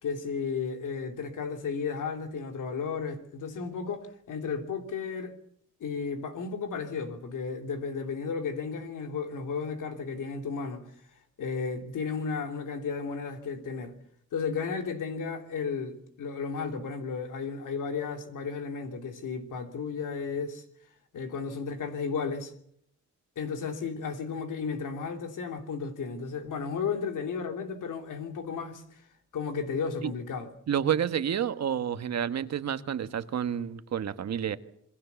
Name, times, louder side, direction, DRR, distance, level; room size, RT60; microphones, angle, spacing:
voice 1, 0.0-5.3 5.8-10.9 11.4-13.9 14.3-20.6 21.1-22.5 23.3-29.1 29.3-30.5, left 5 dB, 85° left, 3.2 m, -34 dB
voice 2, 30.7-34.6, right 9 dB, 60° right, 1.3 m, -29 dB
27.0 x 21.5 x 7.0 m
wide cardioid pair, 135°, 30 cm